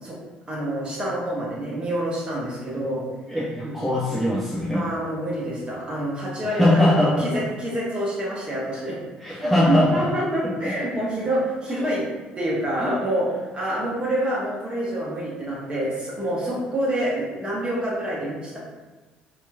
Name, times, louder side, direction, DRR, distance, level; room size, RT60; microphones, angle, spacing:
voice 1, 0.5-3.0 3.6-3.7 4.7-8.9 9.2-12.0 12.3-18.6, right 1 dB, 25° right, -5 dB, 1.0 m, -27 dB
voice 2, 3.3-4.9 6.4-7.4 9.2-10.1 10.4-10.7, left 1 dB, ahead, -7 dB, 0.5 m, -21 dB
2.8 x 2.3 x 2.4 m, 1.3 s
figure-of-eight pair, 50°, 4 cm